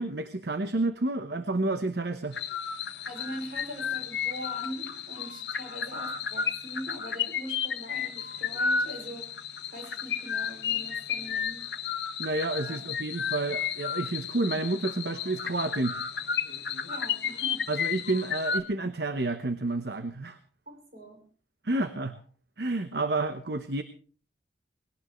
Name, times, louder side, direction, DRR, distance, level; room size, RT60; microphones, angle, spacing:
voice 1, 0.0-2.4 12.2-16.0 17.7-20.4 21.6-22.2 22.6-23.8, right 2 dB, 65° right, 9 dB, 1.0 m, -30 dB
sound 1, 2.3-18.6, left 7 dB, 75° left, 1.2 m, -33 dB
voice 2, 3.0-9.3 9.7-11.7 12.6-12.9 16.8-17.6 20.7-21.2, equal, 50° right, 2 dB, 6.2 m, -42 dB
20.0 x 17.5 x 3.2 m, 0.41 s
head